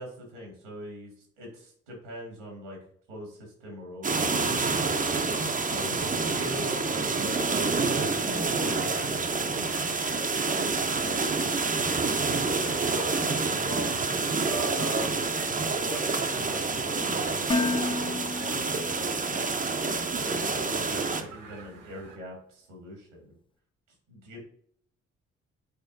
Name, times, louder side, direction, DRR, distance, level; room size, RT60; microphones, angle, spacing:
voice 1, 0.0-2.8 3.1-10.6 11.0-14.2 14.4-15.4 15.8-19.9 20.2-23.3 24.1-24.4, right 1 dB, 80° right, 0 dB, 1.8 m, -42 dB
sound 1, 4.0-21.2, right 4 dB, 20° right, 0.8 m, -28 dB
sound 2, 5.4-22.2, right 3 dB, 65° right, 1.4 m, -49 dB
Dishes pots and pans, 17.5-19.6, left 3 dB, 15° left, 0.5 m, -31 dB
9.1 x 4.3 x 2.6 m, 0.63 s
figure-of-eight pair, 40°, 35 cm